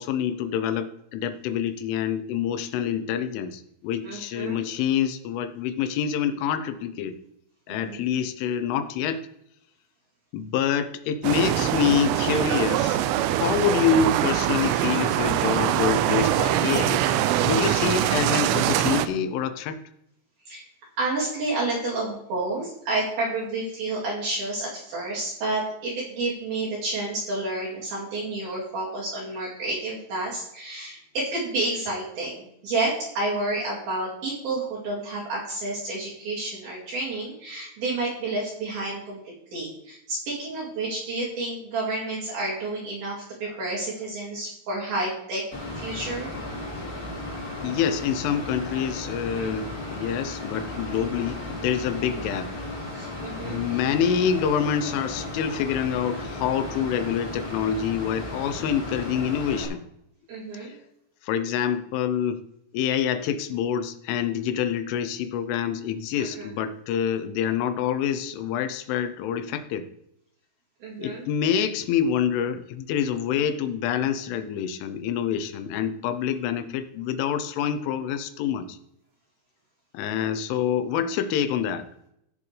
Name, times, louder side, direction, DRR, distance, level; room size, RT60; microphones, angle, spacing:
voice 1, 0.0-7.2 7.7-9.3 10.3-13.0 13.4-17.1 17.4-19.8 47.6-52.5 53.4-59.8 60.5-60.8 61.2-62.4 62.7-69.9 71.0-78.8 79.9-81.9, left 8 dB, 90° left, 10 dB, 3.3 m, -26 dB
voice 2, 4.0-4.7 7.7-8.0 20.5-20.6 21.0-39.2 39.5-45.4 45.8-46.4 49.4-49.5 50.7-50.8 52.2-52.4 52.9-53.6 56.6-56.7 60.3-60.8 66.2-66.5 70.8-71.3, right 2 dB, 55° right, -7 dB, 3.7 m, -30 dB
sound 1, 11.2-19.1, right 12 dB, 90° right, 3.1 m, -23 dB
Mechanical fan, 45.5-59.6, left 1 dB, 40° left, 1.2 m, -35 dB
16.0 x 6.9 x 3.3 m, 0.77 s
omnidirectional pair, 5.5 m